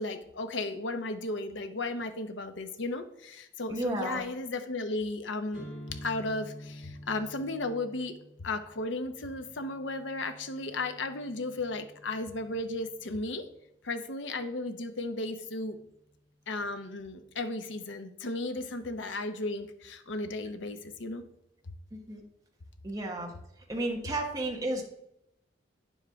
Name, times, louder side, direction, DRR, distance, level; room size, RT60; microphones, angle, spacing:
voice 1, 0.0-13.5 13.8-15.8 16.5-21.2, left 2 dB, 85° left, 8 dB, 0.9 m, -35 dB
voice 2, 3.7-4.2 21.9-22.2 22.8-23.3 23.7-24.8, right 2 dB, 20° right, 0 dB, 1.1 m, -32 dB
sound 1, 5.5-13.3, equal, 65° left, 2.5 m, -49 dB
9.4 x 7.2 x 3.6 m, 0.81 s
head